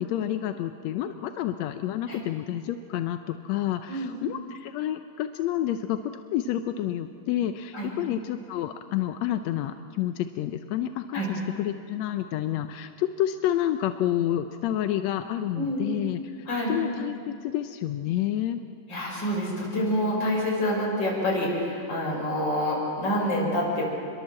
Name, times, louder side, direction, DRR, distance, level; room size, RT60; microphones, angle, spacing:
voice 1, 0.0-6.0 6.3-18.6, left 12 dB, 75° left, 8 dB, 1.6 m, -29 dB
voice 2, 15.5-15.8 16.5-16.7 18.9-23.8, equal, 30° left, -2 dB, 6.5 m, -27 dB
27.5 x 22.5 x 7.6 m, 2.4 s
omnidirectional pair, 3.8 m